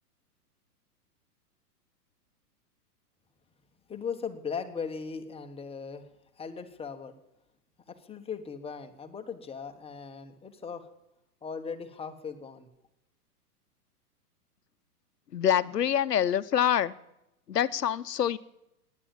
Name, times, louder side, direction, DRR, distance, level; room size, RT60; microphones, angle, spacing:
voice 1, 3.9-6.1 6.3-7.1 7.9-10.9 11.4-12.7, left 6 dB, 10° left, 6 dB, 1.4 m, -38 dB
voice 2, 15.3-16.9 17.5-18.4, left 9 dB, 85° left, 15 dB, 0.9 m, -25 dB
17.5 x 10.5 x 7.3 m, 0.85 s
hypercardioid pair, 115°, 47 cm